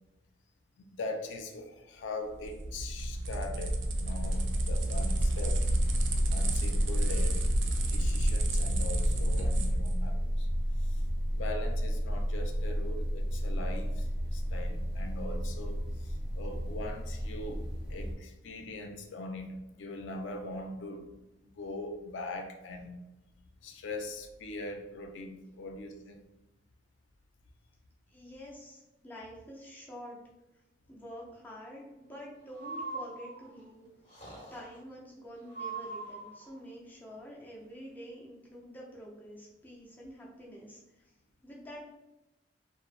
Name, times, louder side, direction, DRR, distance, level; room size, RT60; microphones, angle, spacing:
voice 1, 0.8-5.6 6.3-7.5 7.9-10.5 10.8-11.1 11.3-21.1 21.4-23.0 23.6-26.2, left 2 dB, 90° left, 5 dB, 0.4 m, -41 dB
sound 1, 2.3-10.0, right 1 dB, 85° right, 0.4 m, -30 dB
sound 2, 4.2-18.1, equal, 5° right, 1.0 m, -32 dB
voice 2, 28.1-30.2 30.9-33.9 34.5-41.1 41.4-41.8, equal, 10° left, -4 dB, 0.5 m, -47 dB
Breathing, 32.5-33.6 34.1-34.8 35.5-36.5, right 3 dB, 30° left, 0.8 m, -41 dB
3.0 x 2.1 x 2.4 m, 1.0 s
head